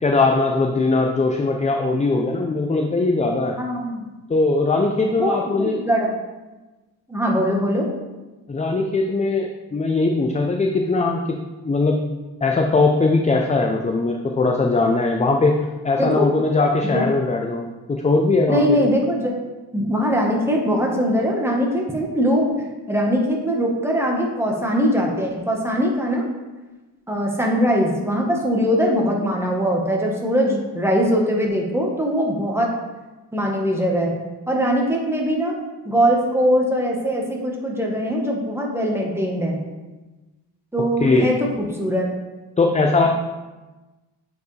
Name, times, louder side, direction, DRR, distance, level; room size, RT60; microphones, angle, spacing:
voice 1, 0.0-3.6 4.3-5.8 8.5-11.4 11.6-12.0 12.4-18.8 41.0-41.3 42.6-43.1, left 3 dB, 20° left, 2 dB, 0.4 m, -20 dB
voice 2, 3.6-4.0 5.1-6.1 7.1-7.9 16.0-16.3 16.9-17.1 18.5-19.4 19.7-22.5 22.9-26.2 27.1-32.7 33.3-34.2 34.5-35.5 35.8-39.6 40.7-42.1, equal, 5° right, -1 dB, 1.1 m, -21 dB
8.0 x 4.6 x 3.2 m, 1.2 s
cardioid pair, 110°, 41 cm